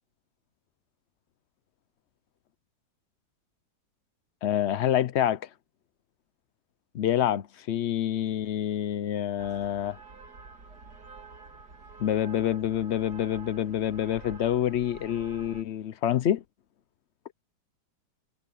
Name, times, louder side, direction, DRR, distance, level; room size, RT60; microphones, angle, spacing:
voice 1, 4.4-5.5 6.9-10.0 12.0-16.4, left 10 dB, 85° left, 0.6 m, -27 dB
sound 1, 9.4-15.6, right 4 dB, 60° right, 3.1 m, -48 dB
omnidirectional pair, 1.9 m